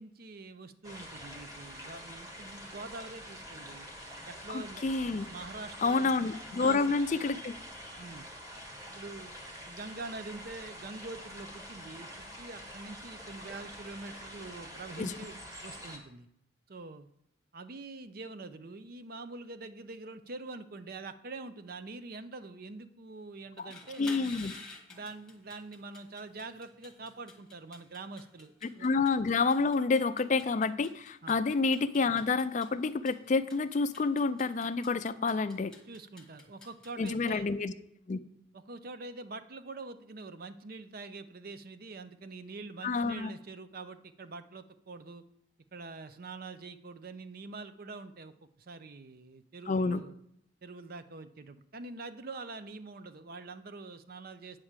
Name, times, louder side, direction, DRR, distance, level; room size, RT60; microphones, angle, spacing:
voice 1, 0.0-3.9 4.3-4.8 5.2-6.1 6.5-6.8 7.1-7.2 8.0-8.3 8.9-9.3 9.7-16.3 16.7-17.1 17.5-24.0 24.9-28.9 31.2-31.4 35.9-37.5 38.5-45.2 45.7-50.2 50.6-54.6, right 3 dB, 50° right, 11 dB, 0.6 m, -45 dB
sound 1, 0.8-16.0, equal, 20° right, 1.5 m, -46 dB
voice 2, 4.5-5.3 5.8-7.5 15.0-15.1 23.6-23.7 24.0-24.5 28.6-35.7 37.0-37.7 38.1-38.2 42.8-43.3 49.7-50.0, left 4 dB, 40° left, 13 dB, 0.4 m, -29 dB
sound 2, 23.5-37.3, left 3 dB, 5° left, 1.2 m, -52 dB
8.9 x 4.8 x 7.3 m, 0.76 s
head